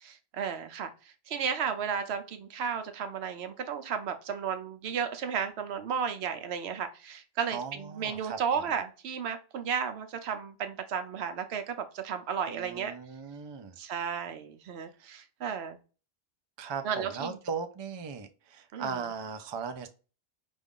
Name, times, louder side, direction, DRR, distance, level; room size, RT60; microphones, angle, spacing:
voice 1, 0.0-12.9 13.8-15.8 16.8-17.3 18.7-19.0, right 7 dB, 80° right, 0.9 m, -34 dB
voice 2, 7.5-8.6 12.5-13.8 15.0-15.1 16.6-19.9, right 5 dB, 35° right, 0.4 m, -38 dB
5.1 x 2.4 x 3.6 m
omnidirectional pair, 1.1 m